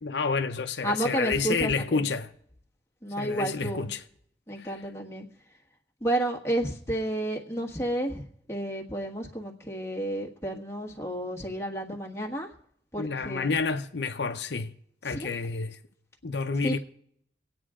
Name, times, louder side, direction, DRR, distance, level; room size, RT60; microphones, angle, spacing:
voice 1, 0.0-2.3 3.2-4.0 4.6-4.7 13.0-14.7 15.0-15.8 16.2-16.8, left 4 dB, 80° left, 0.7 m, -29 dB
voice 2, 0.8-2.0 3.0-3.9 4.5-5.3 6.0-12.5 12.9-13.5 15.1-15.3 16.6-16.8, right 1 dB, 15° left, 1.4 m, -31 dB
24.5 x 8.9 x 3.7 m
head